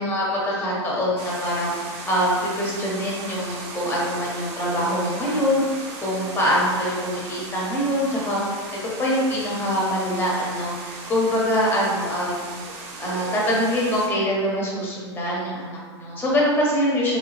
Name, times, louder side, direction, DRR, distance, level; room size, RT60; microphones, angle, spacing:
voice 1, 0.0-1.7 2.1-5.6 6.0-8.4 8.8-12.5 13.0-17.2, equal, 15° left, -4 dB, 0.9 m, -24 dB
sound 1, 1.2-14.1, right 3 dB, 40° right, 0.7 m, -37 dB
3.4 x 2.8 x 3.1 m, 1.5 s
hypercardioid pair, 115°, 15 cm